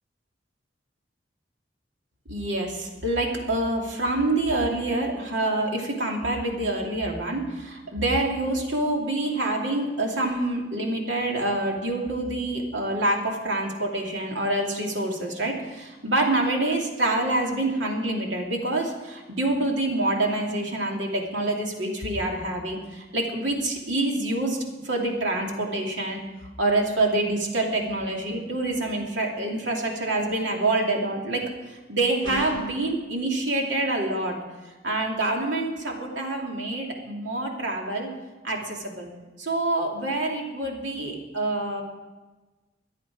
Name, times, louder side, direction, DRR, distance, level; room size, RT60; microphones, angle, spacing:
voice 1, 2.3-24.6 24.8-26.2 26.6-34.4 34.8-38.1 38.4-39.1 39.4-41.8, right 2 dB, 85° right, 0 dB, 2.8 m, -26 dB
sound 1, 32.2-32.8, right 2 dB, 70° right, 4.8 m, -34 dB
24.5 x 8.5 x 4.9 m, 1.2 s
head